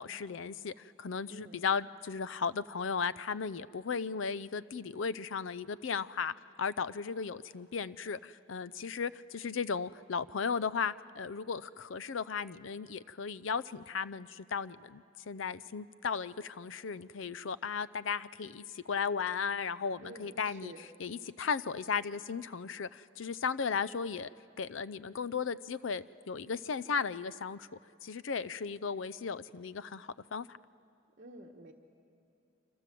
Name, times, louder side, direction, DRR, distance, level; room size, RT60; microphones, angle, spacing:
voice 1, 0.0-20.7 21.0-24.3 24.6-27.7 28.0-30.5, left 6 dB, 70° left, 17 dB, 0.5 m, -36 dB
voice 2, 1.3-1.6 20.0-20.8 31.2-31.7, right 2 dB, 40° right, -1 dB, 1.3 m, -50 dB
29.0 x 25.0 x 7.6 m, 2.6 s
head